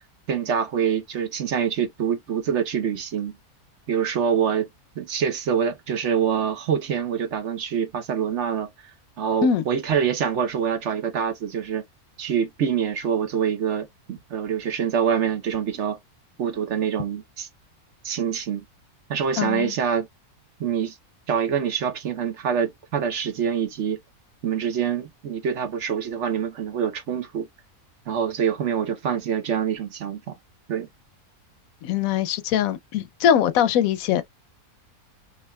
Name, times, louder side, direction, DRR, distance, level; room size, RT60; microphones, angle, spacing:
voice 1, 0.3-3.3 3.9-4.7 5.0-8.7 9.2-11.8 12.2-16.0 16.4-17.5 18.0-18.6 19.1-20.1 20.6-21.0 21.3-24.0 24.4-27.5 28.1-30.4 30.7-30.9, right 7 dB, 55° right, 1.0 m, -25 dB
voice 2, 19.4-19.7 31.8-34.2, left 9 dB, 70° left, 1.0 m, -22 dB
5.5 x 2.8 x 2.2 m
omnidirectional pair, 1.6 m